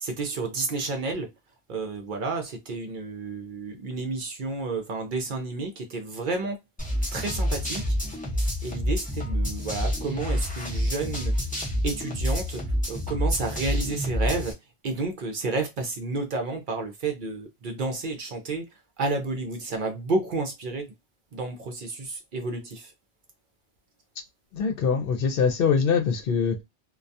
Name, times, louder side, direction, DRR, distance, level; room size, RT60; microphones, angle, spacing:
voice 1, 0.0-1.3 1.7-6.6 7.1-7.9 8.3-11.3 11.8-12.6 12.9-14.5 14.8-18.6 19.0-20.9 21.3-22.9, right 3 dB, 60° right, 0.7 m, -31 dB
sound 1, 6.8-14.5, equal, 10° left, 0.7 m, -28 dB
voice 2, 24.5-26.6, left 6 dB, 65° left, 0.7 m, -23 dB
2.2 x 2.2 x 2.5 m
omnidirectional pair, 1.1 m